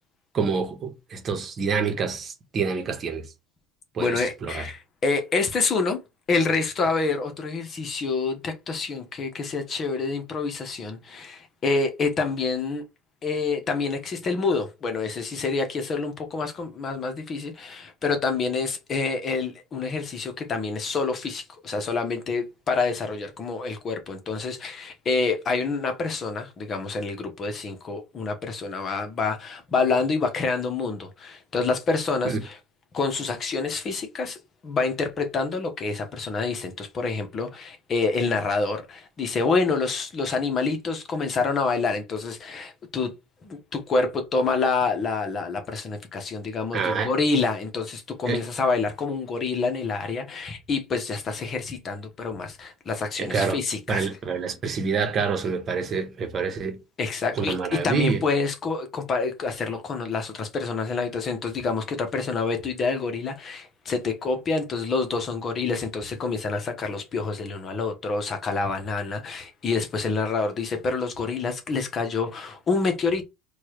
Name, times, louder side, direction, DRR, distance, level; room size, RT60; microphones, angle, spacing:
voice 1, 0.3-3.2 3.9-4.6 32.2-32.4 46.7-47.1 48.2-48.4 53.2-53.6 53.9-56.8 57.4-58.2, right 5 dB, 40° right, 1.0 m, -27 dB
voice 2, 4.0-6.0 6.3-12.8 13.2-32.6 32.9-34.4 34.6-43.1 43.4-54.1 57.0-73.2, left 4 dB, 40° left, 1.0 m, -27 dB
4.5 x 2.4 x 2.9 m
hypercardioid pair, 85°, 0 cm